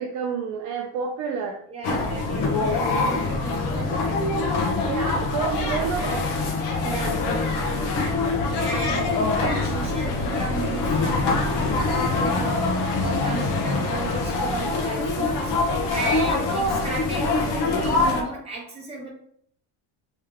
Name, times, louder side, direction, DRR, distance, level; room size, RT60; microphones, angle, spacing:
voice 1, 0.0-1.6 4.8-6.2, right 6 dB, 45° right, 2 dB, 0.4 m, -29 dB
voice 2, 1.7-4.6 6.8-7.5 8.5-19.1, right 2 dB, 15° right, -2 dB, 0.9 m, -35 dB
sound 1, 1.8-18.2, left 3 dB, 70° left, 1.0 m, -24 dB
3.4 x 3.2 x 3.4 m, 0.63 s
cardioid pair, 170°, 43 cm